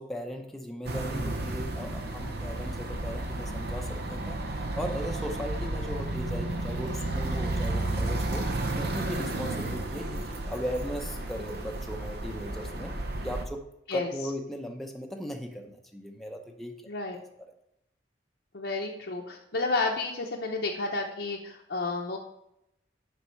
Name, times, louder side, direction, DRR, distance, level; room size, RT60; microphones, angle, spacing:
voice 1, 0.0-4.4 4.8-8.5 8.8-12.9 13.2-16.7, equal, ahead, 1 dB, 0.7 m, -37 dB
sound 1, 0.8-13.4, right 2 dB, 60° right, 0.7 m, -32 dB
voice 2, 18.5-22.2, left 3 dB, 65° left, -2 dB, 0.8 m, -31 dB
6.8 x 5.4 x 4.6 m, 0.81 s
head